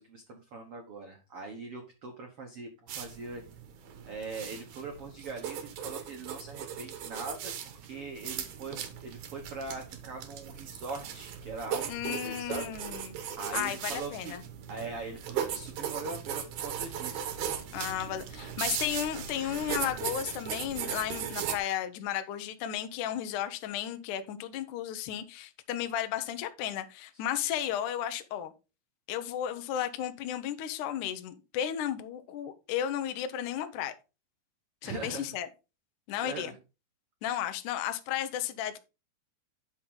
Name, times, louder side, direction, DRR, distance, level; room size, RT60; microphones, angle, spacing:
voice 1, 0.0-3.4 4.0-12.7 13.3-14.3 14.7-17.4 27.1-27.2 34.8-35.3 36.2-36.5, right 3 dB, 85° right, 1.2 m, -41 dB
sound 1, 2.9-21.6, right 9 dB, 65° right, 2.0 m, -38 dB
voice 2, 11.9-13.2 13.5-14.4 17.7-28.5 29.1-33.9 34.8-35.5 36.1-36.5 37.2-38.9, left 10 dB, 75° left, 1.9 m, -34 dB
11.0 x 5.7 x 3.9 m
omnidirectional pair, 4.8 m